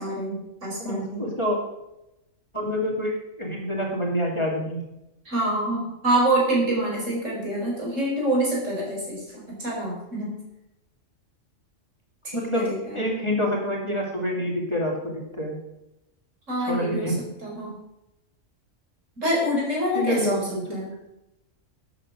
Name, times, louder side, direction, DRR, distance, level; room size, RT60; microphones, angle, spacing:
voice 1, 0.0-1.3 5.3-10.4 12.2-13.0 16.5-17.1 17.4-17.7 19.2-20.9, right 1 dB, 70° right, -3 dB, 5.2 m, -26 dB
voice 2, 0.8-1.6 2.5-3.1 3.4-4.8 12.3-15.6 16.6-17.2 19.9-20.8, equal, 20° left, -1 dB, 2.5 m, -27 dB
12.0 x 7.7 x 6.3 m, 0.91 s
omnidirectional pair, 1.3 m